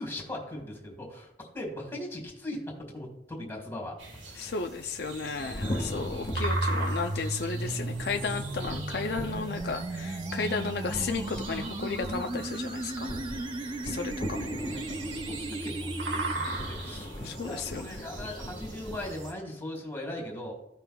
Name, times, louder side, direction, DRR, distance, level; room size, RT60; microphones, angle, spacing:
voice 1, 0.0-3.9 4.3-4.5 6.3-6.8 14.6-17.1 17.4-20.5, left 1 dB, 10° left, 0 dB, 1.9 m, -39 dB
sound 1, 4.0-19.3, right 2 dB, 90° right, 1.7 m, -40 dB
voice 2, 4.4-13.2 13.8-14.5 17.2-18.0, left 4 dB, 60° left, 5 dB, 0.4 m, -34 dB
sound 2, 5.4-19.1, equal, 30° left, 1.4 m, -40 dB
sound 3, 6.3-16.3, right 2 dB, 25° right, 0.4 m, -35 dB
15.5 x 5.7 x 2.3 m, 0.89 s
head